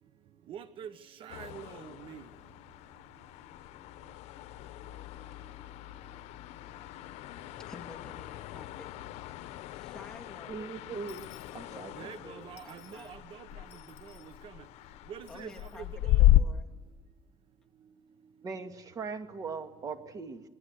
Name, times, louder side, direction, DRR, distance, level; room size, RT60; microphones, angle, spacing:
voice 1, 0.5-2.3 12.0-13.7 14.0-14.7 15.1-16.3, right 8 dB, 55° right, 1.0 m, -46 dB
sound 1, 1.3-16.4, left 15 dB, 85° left, 0.8 m, -33 dB
voice 2, 7.6-8.9 9.7-10.7 11.7-13.2 15.3-16.7, left 3 dB, 5° left, 2.4 m, -51 dB
voice 3, 10.5-11.3 11.5-12.1 18.4-20.4, right 5 dB, 35° right, 2.2 m, -40 dB
Dishes pots and pans / Coin (dropping), 11.1-12.2 12.6-13.2 13.7-14.4 15.3-15.8, left 14 dB, 60° left, 3.2 m, -58 dB
27.0 x 21.0 x 8.1 m
cardioid pair, 155°, 11 cm